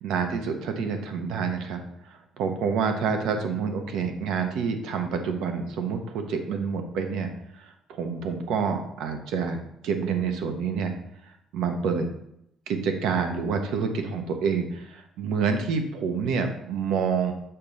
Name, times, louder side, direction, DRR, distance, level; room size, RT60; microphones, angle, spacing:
voice 1, 0.0-9.6 9.8-10.9 11.3-12.1 12.7-17.3, right 5 dB, 75° right, 6 dB, 0.8 m, -28 dB
6.7 x 2.9 x 5.2 m, 0.77 s
cardioid pair, 175°, 0 cm